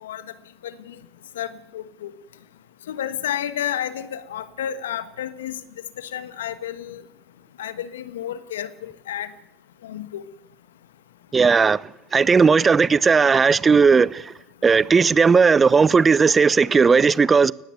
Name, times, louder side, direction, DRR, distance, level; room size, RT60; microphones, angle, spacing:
voice 1, 1.4-2.1 2.9-5.6 6.0-7.0 7.6-9.3 9.8-10.2, left 10 dB, 80° left, 1.4 m, -31 dB
voice 2, 11.3-14.3 14.6-17.5, right 5 dB, 30° right, 0.8 m, -16 dB
19.5 x 14.5 x 9.4 m
hypercardioid pair, 70°, 0 cm